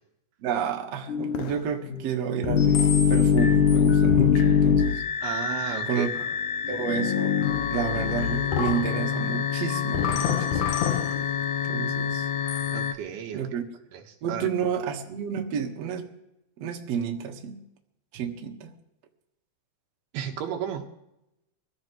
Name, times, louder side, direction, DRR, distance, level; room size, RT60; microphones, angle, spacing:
voice 1, 0.4-5.0 5.9-6.1 6.7-7.4 7.7-10.6 11.6-12.3 13.3-13.6 14.2-16.1 16.6-17.6 18.1-18.7, right 7 dB, 55° right, 2.1 m, -30 dB
sound 1, 1.1-12.9, left 8 dB, 70° left, 2.1 m, -24 dB
voice 2, 5.2-6.1 6.6-6.7 12.7-13.5 13.9-14.5 20.1-20.9, right 9 dB, 90° right, 3.2 m, -33 dB
23.5 x 14.5 x 3.1 m
omnidirectional pair, 4.4 m